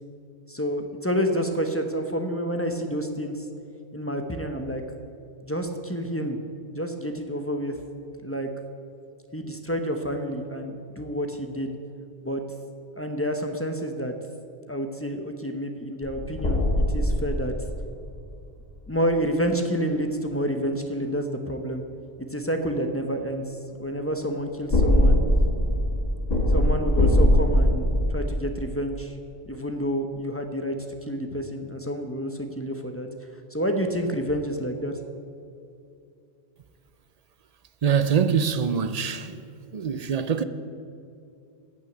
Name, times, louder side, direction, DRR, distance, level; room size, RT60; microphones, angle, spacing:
voice 1, 0.5-3.5 3.9-4.8 5.4-6.4 6.7-7.7 8.2-8.5 9.3-11.8 12.2-12.4 12.9-14.1 14.7-17.5 18.9-21.8 22.2-25.2 26.5-29.1 29.5-33.1 33.3-34.9, equal, 15° left, 0.8 m, -29 dB
sound 1, 16.0-18.2 24.7-28.1, left 1 dB, 35° left, 1.5 m, -21 dB
voice 2, 37.8-39.4 39.7-40.4, right 7 dB, 45° right, 0.5 m, -24 dB
14.5 x 6.2 x 9.2 m
omnidirectional pair, 1.2 m